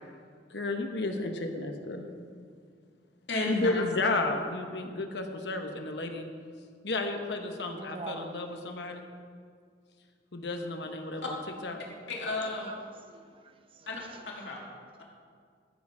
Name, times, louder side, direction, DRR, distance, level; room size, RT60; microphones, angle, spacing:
voice 1, 0.5-2.1 3.6-6.2 6.8-9.1 10.3-11.8, left 2 dB, 70° left, 1.1 m, -32 dB
voice 2, 3.3-3.7 11.2-11.3 12.1-12.7 13.9-14.6, left 3 dB, 90° left, 2.3 m, -32 dB
voice 3, 7.7-8.4 8.7-9.0 12.4-14.3, right 3 dB, 30° right, 0.6 m, -46 dB
14.0 x 7.4 x 4.9 m
head